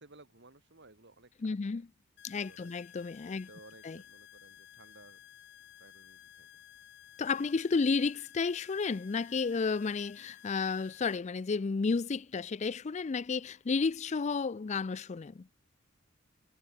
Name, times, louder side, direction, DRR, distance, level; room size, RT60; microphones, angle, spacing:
voice 1, 0.0-1.8 2.3-2.9 3.3-5.2 5.8-6.6 7.4-7.5, right 2 dB, 60° right, 3.9 m, -58 dB
voice 2, 1.4-1.9 2.2-3.5 3.8-4.0 7.2-15.5, left 4 dB, 35° left, 0.4 m, -32 dB
sound 1, 2.2-11.2, left 11 dB, 55° left, 0.8 m, -55 dB
head